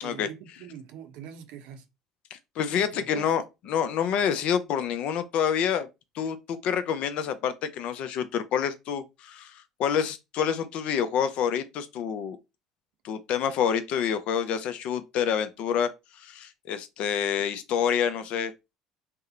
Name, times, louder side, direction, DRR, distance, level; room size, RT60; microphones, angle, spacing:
voice 1, 0.0-1.8 2.7-3.3, right 9 dB, 65° right, 0.5 m, -43 dB
voice 2, 2.3-5.9 6.1-12.4 13.0-15.9 16.2-18.5, left 8 dB, 55° left, 0.4 m, -27 dB
2.7 x 2.0 x 2.4 m
hypercardioid pair, 65°, 2 cm